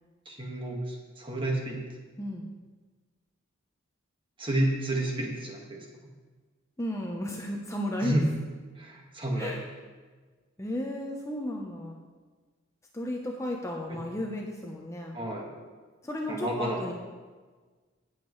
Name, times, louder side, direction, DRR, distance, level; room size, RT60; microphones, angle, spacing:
voice 1, 0.3-1.8 4.4-5.9 8.0-8.2 8.8-9.6 13.9-14.0 15.1-15.5 16.3-16.8, right 1 dB, 25° right, -1 dB, 1.7 m, -30 dB
voice 2, 6.8-8.2 9.4-9.6 10.6-12.0 12.9-15.2 16.0-16.9, left 1 dB, 15° left, 0 dB, 0.8 m, -34 dB
17.5 x 7.4 x 3.2 m, 1.4 s
head